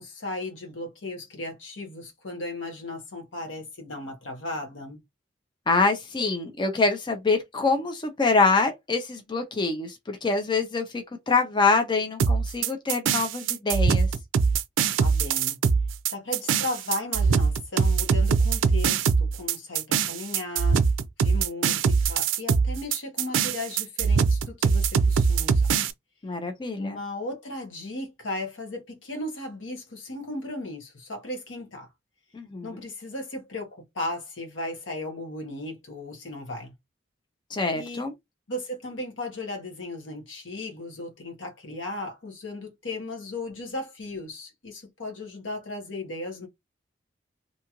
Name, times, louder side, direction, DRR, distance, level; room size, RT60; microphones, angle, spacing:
voice 1, 0.0-5.0 15.0-15.6 16.1-20.8 21.2-25.7 26.8-31.9 32.6-36.7 37.7-38.1 38.5-46.5, left 2 dB, 80° left, 1.0 m, -36 dB
voice 2, 5.7-14.1 26.2-27.0 32.3-32.8 37.5-38.1, left 3 dB, 25° left, 0.5 m, -25 dB
sound 1, 12.2-25.9, right 5 dB, 90° right, 0.4 m, -22 dB
2.7 x 2.4 x 2.9 m
head